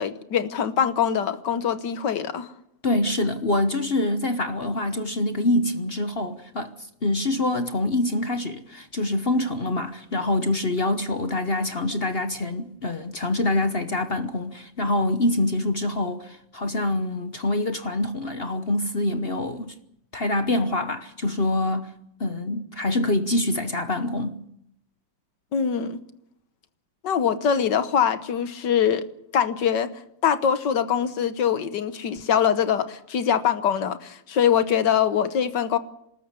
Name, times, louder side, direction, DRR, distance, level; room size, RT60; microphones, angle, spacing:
voice 1, 0.0-2.5 25.5-26.0 27.0-29.0 29.3-29.9 30.2-35.8, left 8 dB, 65° left, 1.7 m, -23 dB
voice 2, 2.8-6.7 7.0-19.8 20.1-21.9 22.2-24.4, left 2 dB, 40° left, 1.0 m, -25 dB
25.0 x 13.5 x 9.6 m
omnidirectional pair, 2.1 m